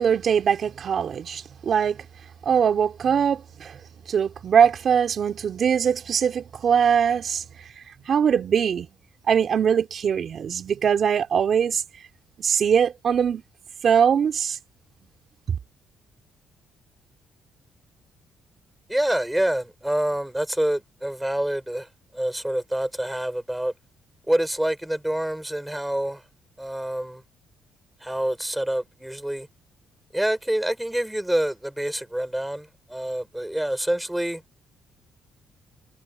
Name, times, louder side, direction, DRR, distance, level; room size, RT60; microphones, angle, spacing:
voice 1, 0.0-2.0 2.4-3.8 4.1-7.4 8.1-8.9 9.3-11.8 12.4-13.4 13.8-14.6, right 7 dB, 55° right, 3.3 m, -21 dB
voice 2, 18.9-23.7 24.3-26.2 26.6-27.2 28.0-29.5 30.1-34.4, right 1 dB, 5° right, 5.6 m, -27 dB
cardioid pair, 90°, 0 cm